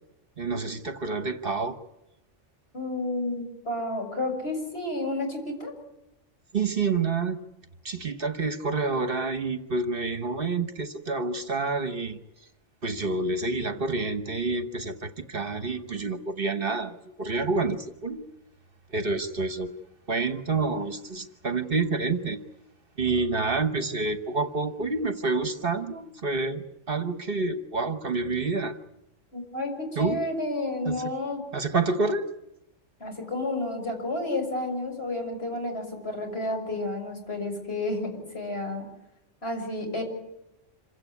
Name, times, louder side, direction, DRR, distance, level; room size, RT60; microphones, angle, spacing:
voice 1, 0.4-1.8 6.5-7.4 7.8-12.2 12.8-18.3 18.9-19.7 20.1-22.4 23.0-28.8 30.0-30.2 30.8-31.0 31.5-32.3, right 3 dB, 50° right, 10 dB, 1.2 m, -28 dB
voice 2, 2.7-5.7 29.3-31.4 33.0-38.9 39.4-40.0, left 2 dB, 55° left, 2 dB, 6.4 m, -31 dB
27.0 x 16.5 x 9.7 m, 0.89 s
omnidirectional pair, 1.3 m